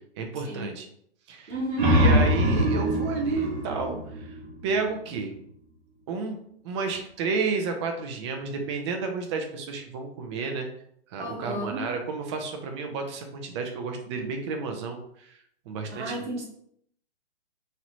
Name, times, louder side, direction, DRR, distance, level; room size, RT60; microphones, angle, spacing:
voice 1, 0.2-0.9 1.3-1.5 1.9-4.3 4.6-5.3 6.1-6.4 6.6-10.7 11.1-15.0 15.7-16.3, right 4 dB, 25° right, 4 dB, 0.5 m, -31 dB
sound 1, 1.5-4.9, equal, 45° right, 0.9 m, -24 dB
voice 2, 1.5-2.0 11.2-11.8 15.9-16.4, equal, 85° right, -2 dB, 1.0 m, -32 dB
3.1 x 2.9 x 2.5 m, 0.68 s
hypercardioid pair, 125°, 34 cm